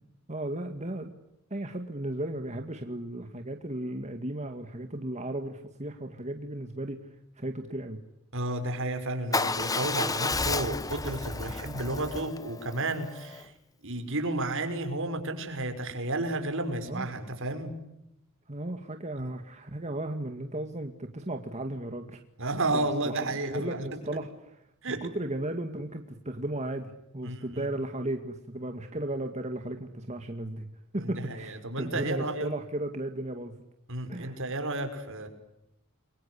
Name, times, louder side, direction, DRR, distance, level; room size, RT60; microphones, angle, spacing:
voice 1, 0.3-1.1 1.5-7.0 7.4-8.0 16.9-17.1 18.5-22.2 22.7-23.2 23.4-24.6 24.9-30.7 30.9-33.6 34.1-34.4, right 1 dB, 30° right, 5 dB, 2.1 m, -35 dB
voice 2, 8.3-13.5 13.8-17.7 19.2-19.3 22.4-24.0 24.8-25.1 27.2-27.6 31.0-32.5 33.9-35.3, right 2 dB, 60° right, 7 dB, 5.8 m, -32 dB
Motorcycle / Engine starting / Idling, 9.3-13.4, left 3 dB, 15° left, 1.0 m, -32 dB
30.0 x 23.5 x 8.4 m, 0.86 s
head